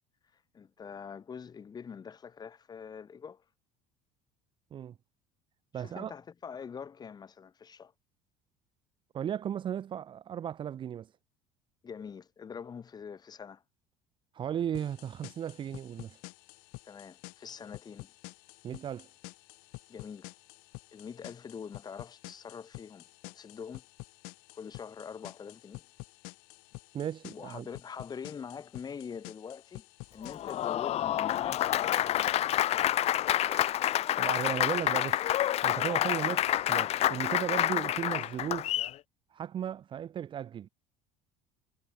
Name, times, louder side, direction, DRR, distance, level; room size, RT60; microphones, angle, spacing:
voice 1, 0.5-3.4 5.7-7.9 11.8-13.6 16.8-18.1 19.9-20.3 20.9-23.8 24.5-25.8 27.3-29.9 30.1-32.4, left 6 dB, 25° left, 5.5 m, -44 dB
voice 2, 5.7-6.1 9.1-11.1 14.3-16.2 18.6-19.1 26.9-27.7 34.2-35.3 35.6-38.7 39.3-40.7, right 9 dB, 35° right, 0.8 m, -36 dB
sound 1, 14.7-30.7, left 33 dB, 80° left, 4.7 m, -50 dB
Applause, 30.2-38.9, left 12 dB, 45° left, 1.1 m, -28 dB
cardioid pair, 135°, 15 cm